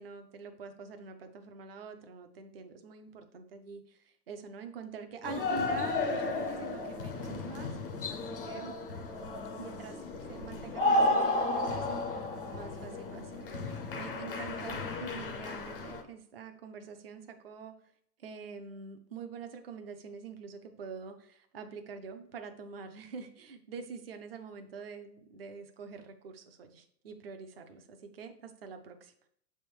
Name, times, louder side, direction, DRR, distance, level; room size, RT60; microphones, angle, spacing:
voice 1, 0.0-7.7 8.1-8.7 9.6-10.0 10.3-17.7 18.2-29.1, right 5 dB, 40° right, 7 dB, 0.4 m, -45 dB
sound 1, 5.2-16.0, left 2 dB, 40° left, 0.4 m, -33 dB
6.8 x 3.4 x 4.4 m, 0.65 s
hypercardioid pair, 175°, 48 cm